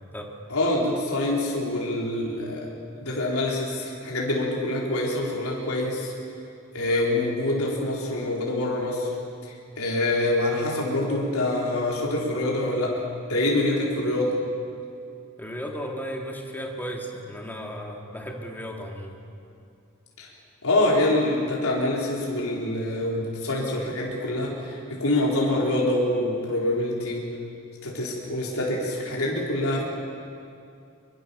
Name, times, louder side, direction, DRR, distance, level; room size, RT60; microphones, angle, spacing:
voice 1, 0.5-2.7 3.0-6.1 6.7-9.1 9.8-13.0 13.3-14.4 20.2-20.3 20.6-27.3 27.8-29.8, left 1 dB, 75° left, -3 dB, 4.4 m, -25 dB
voice 2, 15.4-19.2, equal, 10° left, 0 dB, 2.8 m, -35 dB
24.5 x 23.5 x 7.1 m, 2.4 s
head